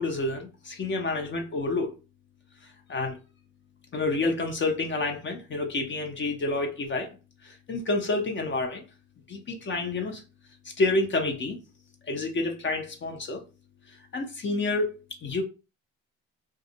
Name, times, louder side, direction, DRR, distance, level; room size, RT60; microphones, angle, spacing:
voice 1, 0.0-1.9 2.9-3.2 3.9-7.1 7.4-8.8 9.3-10.2 10.8-11.6 12.1-13.4 14.1-15.4, left 2 dB, 40° left, 0.6 m, -29 dB
2.4 x 2.0 x 2.7 m
cardioid pair, 90°, 30 cm